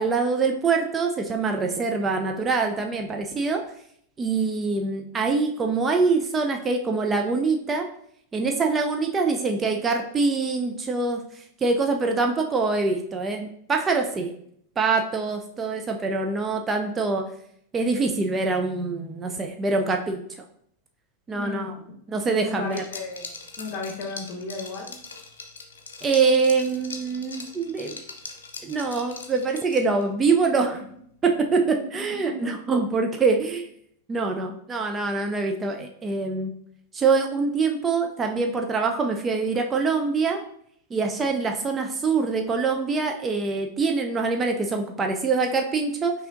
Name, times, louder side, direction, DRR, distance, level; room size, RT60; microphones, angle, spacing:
voice 1, 0.0-3.6 4.2-7.9 8.3-14.3 14.8-17.2 17.7-20.2 21.3-21.8 22.1-22.8 26.0-28.0 28.6-30.8 31.2-33.7 34.1-36.5 36.9-40.4 40.9-46.1, right 4 dB, 20° right, 3 dB, 0.3 m, -24 dB
voice 2, 21.3-21.7 22.4-23.3 23.6-25.0 30.7-30.8 31.6-31.7 32.2-32.5, left 3 dB, 40° left, 2 dB, 0.9 m, -34 dB
Liquid, 22.7-30.1, left 4 dB, 70° left, 0.5 m, -41 dB
5.4 x 2.7 x 2.5 m, 0.68 s
figure-of-eight pair, 90°, 0 cm